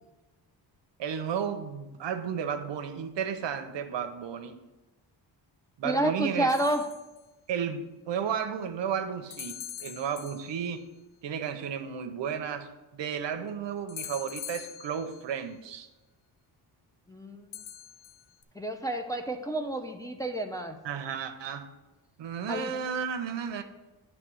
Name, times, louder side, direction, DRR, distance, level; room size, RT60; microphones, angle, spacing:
voice 1, 1.0-4.6 5.8-6.5 7.5-10.8 11.2-15.9 20.8-21.7 22.2-23.6, right 7 dB, 70° right, 8 dB, 0.8 m, -33 dB
voice 2, 5.8-6.8 17.1-17.4 18.6-20.8 22.5-22.7, right 1 dB, 10° left, 2 dB, 0.5 m, -29 dB
sound 1, 6.5-7.2 9.3-10.8 13.9-15.4 17.5-18.4, left 10 dB, 75° left, 0.6 m, -43 dB
9.2 x 3.2 x 6.1 m, 1.1 s
cardioid pair, 100°, 45 cm